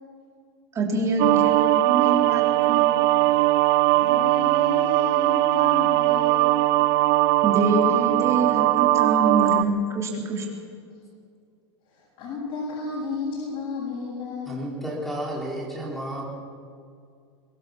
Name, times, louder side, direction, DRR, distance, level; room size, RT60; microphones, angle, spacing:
voice 1, 0.7-2.9 7.4-10.5, right 2 dB, 20° right, -1 dB, 4.2 m, -25 dB
sound 1, 1.2-9.6, right 17 dB, 45° right, 0.8 m, -20 dB
voice 2, 3.9-6.6 11.9-14.6, left 3 dB, 40° left, -5 dB, 7.6 m, -33 dB
voice 3, 14.4-16.2, right 1 dB, ahead, -3 dB, 4.5 m, -32 dB
24.0 x 19.0 x 7.4 m, 2.3 s
supercardioid pair, 145°, 15 cm